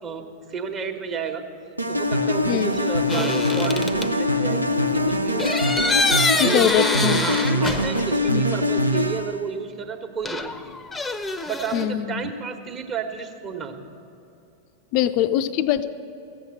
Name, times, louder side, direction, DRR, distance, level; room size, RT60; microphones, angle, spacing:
voice 1, 0.0-1.4 1.9-5.5 6.1-6.9 7.2-10.7 11.5-13.8, right 6 dB, 30° right, 5 dB, 1.2 m, -31 dB
sound 1, 1.8-9.4, left 1 dB, 85° right, 0.6 m, -23 dB
sound 2, 3.1-4.1 5.4-8.2 8.5-8.6 10.2-11.9, left 3 dB, 10° left, 0.7 m, -25 dB
voice 2, 6.4-7.2 8.3-8.4 11.7-12.3 14.9-15.9, left 12 dB, 45° left, 12 dB, 0.5 m, -22 dB
15.0 x 7.9 x 7.6 m, 2.9 s
figure-of-eight pair, 90°, 0 cm